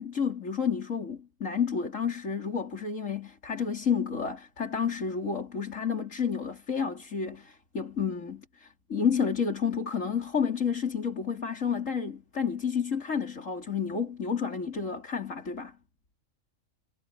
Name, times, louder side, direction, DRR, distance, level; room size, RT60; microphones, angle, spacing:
voice 1, 0.0-15.7, left 6 dB, 70° left, 4.0 m, -30 dB
omnidirectional pair, 1.4 m